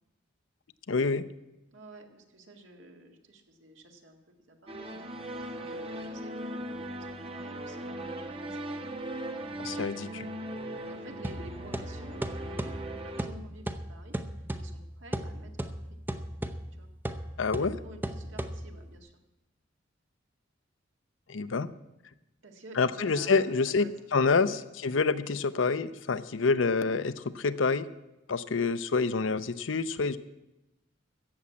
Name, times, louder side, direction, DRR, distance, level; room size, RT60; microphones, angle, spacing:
voice 1, 0.9-1.2 9.6-10.3 17.4-17.7 21.3-21.7 22.8-23.8 24.1-27.8 28.3-30.2, left 4 dB, 75° left, 13 dB, 0.7 m, -27 dB
voice 2, 1.7-5.0 5.6-8.9 10.0-10.1 10.9-14.2 14.6-16.0 16.7-16.9 17.6-19.1 22.4-23.9 24.5-24.6 27.3-27.5 28.5-28.7, right 1 dB, 70° right, 3 dB, 1.9 m, -51 dB
sound 1, 4.7-13.3, right 1 dB, 30° right, 1.1 m, -39 dB
sound 2, 11.2-19.0, right 1 dB, 10° right, 0.7 m, -37 dB
14.5 x 7.2 x 8.6 m, 0.97 s
head